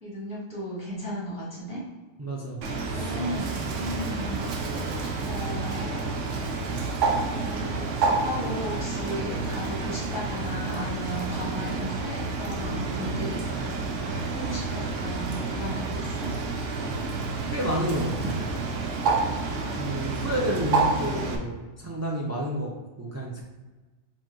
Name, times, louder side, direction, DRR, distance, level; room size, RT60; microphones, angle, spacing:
voice 1, 0.0-1.8 2.9-4.5 5.2-6.2 7.2-16.3, equal, 5° right, -7 dB, 1.3 m, -35 dB
voice 2, 2.2-2.6 2.9-3.2 3.6-3.7 17.5-18.4 19.8-23.4, equal, 25° right, -3 dB, 0.3 m, -30 dB
Bird, 2.6-21.4, right 3 dB, 70° right, 0.9 m, -29 dB
4.4 x 3.0 x 3.7 m, 1.2 s
omnidirectional pair, 1.4 m